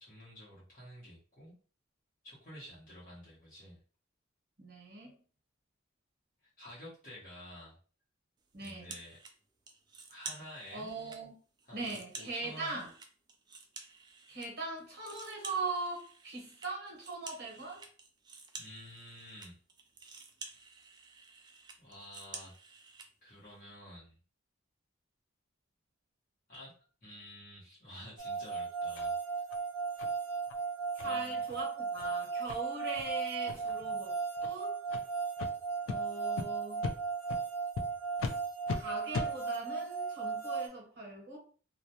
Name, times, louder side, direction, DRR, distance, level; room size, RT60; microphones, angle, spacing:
voice 1, 0.0-1.5 2.2-3.8 6.6-7.8 8.6-9.2 10.1-10.9 11.6-12.8 18.5-19.6 21.8-22.5 23.2-24.2 26.5-26.7 27.0-29.2 31.0-31.4, equal, 45° left, 0.9 m, -50 dB
voice 2, 4.6-5.1 8.5-8.9 10.7-11.3 11.7-12.9 14.3-17.8 30.9-34.8 35.9-36.8 38.7-41.4, right 3 dB, 55° right, 0.9 m, -40 dB
sound 1, 8.6-9.3 9.7-11.2 11.6-14.5 14.8-23.1, right 4 dB, 20° right, 0.3 m, -50 dB
sound 2, 28.2-40.7, right 5 dB, 70° right, 0.6 m, -36 dB
sound 3, 29.0-29.1 29.5-29.6 30.0-30.1 30.5-30.6 31.0-31.1 31.5-31.6 32.0-32.1 32.5-32.6 33.0-33.1 33.5-33.8 34.4-34.5 34.9-35.0 35.4-35.5 35.9-36.0 36.4-36.5 36.8-37.0 37.3-37.4 37.8-37.9 38.2-38.3 38.7-38.8 39.1-39.3, left 4 dB, 75° left, 0.3 m, -37 dB
2.3 x 2.1 x 2.7 m
head